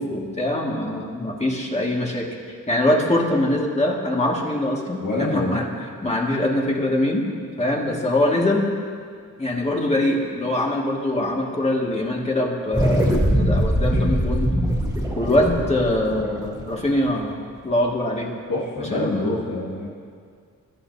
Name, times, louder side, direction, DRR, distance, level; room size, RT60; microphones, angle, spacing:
voice 1, 0.0-2.3 2.7-5.7 6.0-7.2 7.6-8.7 9.4-14.5 15.2-17.4 17.6-18.3 18.8-19.3, left 1 dB, 20° left, -1 dB, 2.1 m, -23 dB
voice 2, 5.0-5.6 18.5-19.9, left 2 dB, 80° left, -7 dB, 2.1 m, -25 dB
sound 1, 12.7-17.4, equal, 10° right, 2.5 m, -22 dB
22.5 x 11.5 x 2.8 m, 2.1 s
wide cardioid pair, 95°, 32 cm